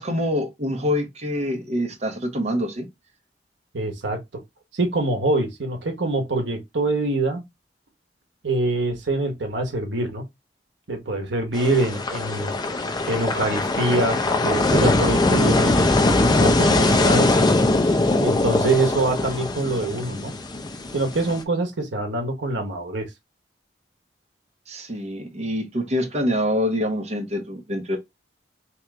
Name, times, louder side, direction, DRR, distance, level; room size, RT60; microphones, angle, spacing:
voice 1, 0.0-2.9 24.7-28.0, left 1 dB, 40° right, 0.9 m, -25 dB
voice 2, 3.7-4.2 4.7-7.4 8.4-10.2 10.9-12.5 13.1-15.8 16.2-17.3 17.8-20.3 20.9-23.1, right 2 dB, 90° right, 0.9 m, -25 dB
sound 1, 11.5-21.4, left 2 dB, 25° left, 0.5 m, -21 dB
3.1 x 2.9 x 3.5 m
head